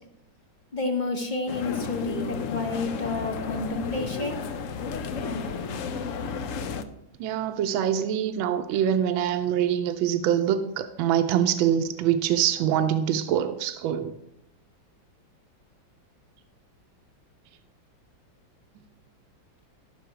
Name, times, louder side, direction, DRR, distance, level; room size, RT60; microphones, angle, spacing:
voice 1, 0.7-4.5, left 3 dB, 35° left, 4 dB, 0.7 m, -30 dB
sound 1, 1.5-6.8, left 5 dB, 75° left, 0.7 m, -33 dB
voice 2, 7.2-14.2, right 9 dB, 85° right, 8 dB, 1.4 m, -24 dB
13.0 x 6.3 x 4.8 m, 0.82 s
omnidirectional pair, 2.1 m